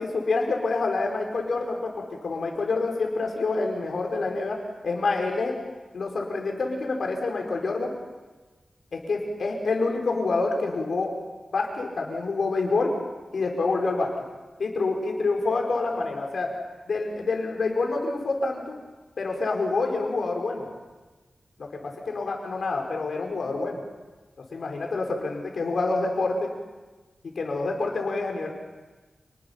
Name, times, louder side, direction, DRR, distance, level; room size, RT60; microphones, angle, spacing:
voice 1, 0.0-5.6 5.9-7.9 8.9-11.1 11.5-12.9 13.3-14.1 14.6-16.5 16.9-18.7 19.2-20.7 21.6-23.8 24.5-26.5 27.2-28.5, left 3 dB, 75° left, 1 dB, 4.7 m, -27 dB
28.5 x 20.0 x 5.8 m, 1.2 s
wide cardioid pair, 80°, 0 cm